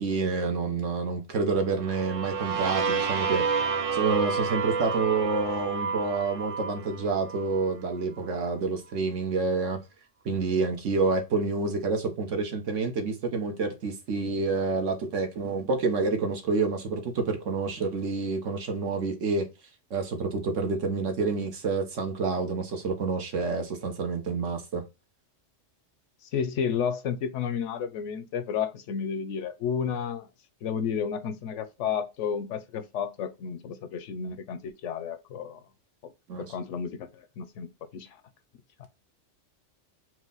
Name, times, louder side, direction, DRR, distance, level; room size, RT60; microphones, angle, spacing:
voice 1, 0.0-3.6 3.9-9.8 10.2-19.4 19.9-24.8 36.3-36.5, right 4 dB, 75° right, 1.3 m, -28 dB
sound 1, 1.8-7.6, right 5 dB, 55° right, 0.3 m, -30 dB
voice 2, 26.2-30.3 30.6-35.6 36.0-36.1 36.5-38.2 38.8-38.9, left 7 dB, 75° left, 0.9 m, -32 dB
4.6 x 2.1 x 3.8 m
omnidirectional pair, 1.3 m